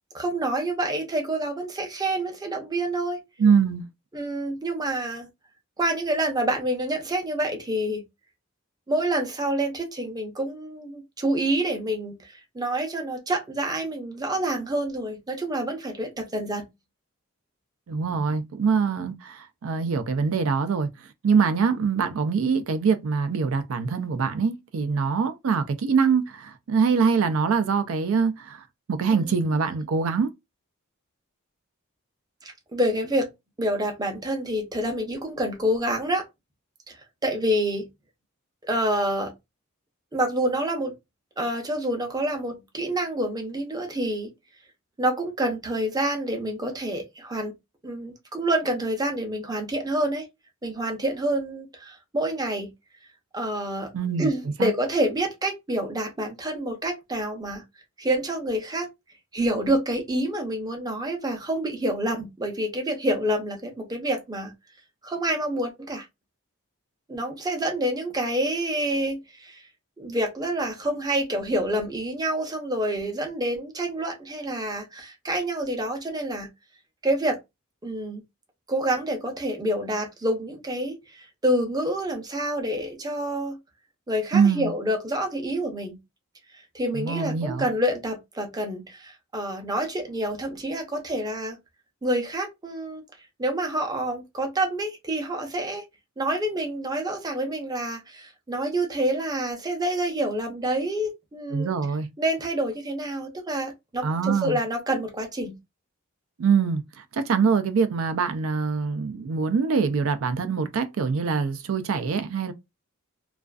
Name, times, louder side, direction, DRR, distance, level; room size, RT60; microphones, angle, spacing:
voice 1, 0.1-3.2 4.1-5.3 5.8-8.0 8.9-16.6 29.1-29.3 32.4-33.3 33.6-36.3 36.9-37.9 38.6-39.3 40.1-40.9 41.4-44.3 45.0-47.5 47.8-50.3 50.6-52.7 53.3-53.9 54.2-57.6 58.0-58.9 59.3-64.5 65.0-66.1 67.1-69.6 70.0-76.5 77.0-77.4 77.8-78.2 78.7-83.6 84.1-86.0 86.7-91.6 92.0-93.0 93.4-95.8 96.2-101.7 102.2-105.6, right 1 dB, 20° right, 0.6 m, -27 dB
voice 2, 3.4-3.8 17.9-20.9 21.2-30.3 53.9-54.3 54.6-54.7 84.3-84.7 86.9-87.7 101.5-102.1 104.0-104.6 106.4-106.8 107.1-112.5, right 5 dB, 70° right, 0.4 m, -24 dB
2.4 x 2.4 x 2.3 m
head